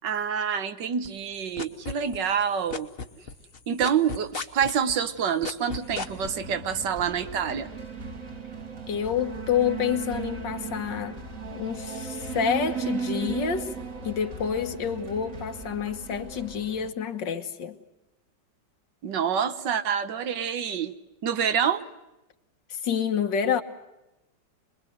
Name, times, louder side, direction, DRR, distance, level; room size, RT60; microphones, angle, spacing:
voice 1, 0.0-2.9 3.7-7.7 19.0-20.9 21.2-21.8, right 7 dB, 80° right, 1.7 m, -27 dB
sound 1, 1.0-2.4 2.7-6.3, left 5 dB, 40° left, 1.1 m, -34 dB
sound 2, 5.8-16.9, right 5 dB, 45° right, 2.3 m, -36 dB
voice 2, 8.9-11.2 11.5-13.7 14.0-17.8 22.7-23.6, left 8 dB, 80° left, 2.0 m, -28 dB
26.0 x 21.5 x 7.9 m
omnidirectional pair, 1.9 m